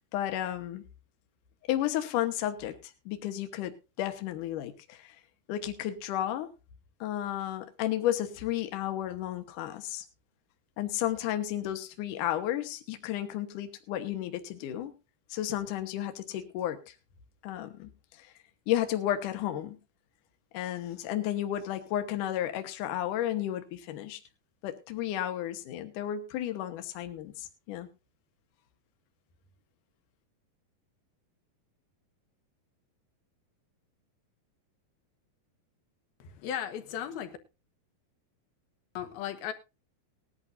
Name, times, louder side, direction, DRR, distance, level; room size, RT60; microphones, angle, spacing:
voice 1, 0.1-0.8 1.7-5.2 5.5-6.5 7.0-10.0 10.8-14.9 15.3-16.9 17.4-17.9 18.2-18.3 18.7-19.8 20.5-24.2 24.6-27.9, left 12 dB, 70° left, 2.5 m, -33 dB
voice 2, 36.2-37.4 38.9-39.5, left 10 dB, 85° left, 3.2 m, -36 dB
19.5 x 11.0 x 2.6 m
omnidirectional pair, 4.2 m